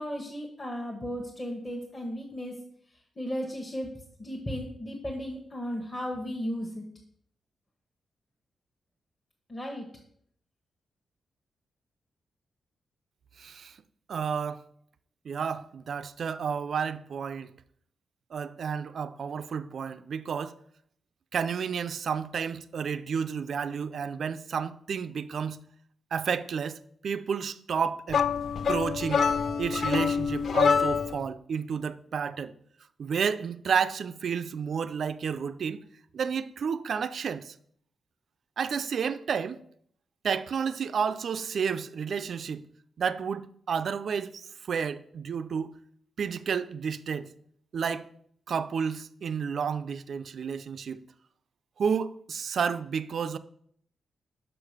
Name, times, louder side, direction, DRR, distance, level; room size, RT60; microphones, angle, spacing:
voice 1, 0.0-2.5 3.2-3.9 4.2-6.8 9.5-9.9, equal, 20° left, 1.0 m, -35 dB
voice 2, 13.4-13.8 14.1-14.6 15.2-17.5 18.3-20.6 21.3-25.6 26.1-28.2 28.7-29.3 29.6-32.5 33.0-35.8 36.1-37.5 38.6-39.6 40.2-42.7 43.0-45.7 46.2-47.3 47.7-48.1 48.5-51.0 51.8-53.4, right 6 dB, 50° right, 0.4 m, -31 dB
sound 1, 28.1-31.2, left 6 dB, 50° left, 0.4 m, -26 dB
5.9 x 4.9 x 6.4 m
wide cardioid pair, 170°, 0 cm